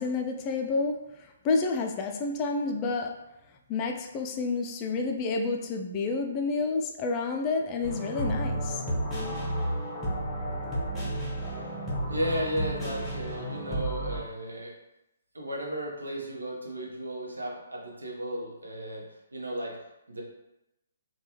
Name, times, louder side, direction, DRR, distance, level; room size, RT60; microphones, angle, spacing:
voice 1, 0.0-3.1 3.7-8.8, left 3 dB, 25° left, 3 dB, 0.3 m, -29 dB
sound 1, 7.8-14.2, right 1 dB, 5° left, 0.8 m, -32 dB
voice 2, 12.1-14.7 15.3-19.0 19.3-20.2, equal, 75° right, -2 dB, 0.8 m, -34 dB
3.3 x 2.3 x 2.9 m, 0.90 s
figure-of-eight pair, 130°, 0 cm